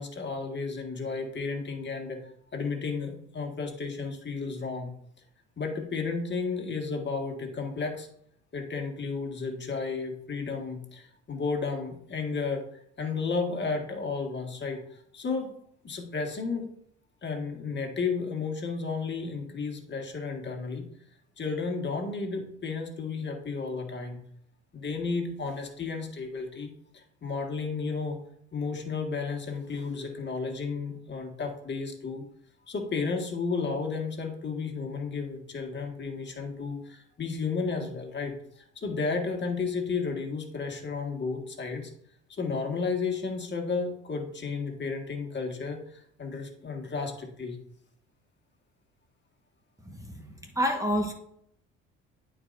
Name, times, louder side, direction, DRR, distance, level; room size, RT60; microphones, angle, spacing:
voice 1, 0.0-4.9 5.6-8.1 8.5-12.6 13.0-15.5 15.8-16.7 17.2-20.9 21.4-24.2 24.7-28.2 28.5-32.2 32.7-41.9 42.3-47.6, left 4 dB, 40° left, 2 dB, 1.7 m, -33 dB
voice 2, 49.8-51.1, equal, 10° right, 3 dB, 1.3 m, -29 dB
11.0 x 4.7 x 2.6 m, 0.68 s
supercardioid pair, 70°, 29 cm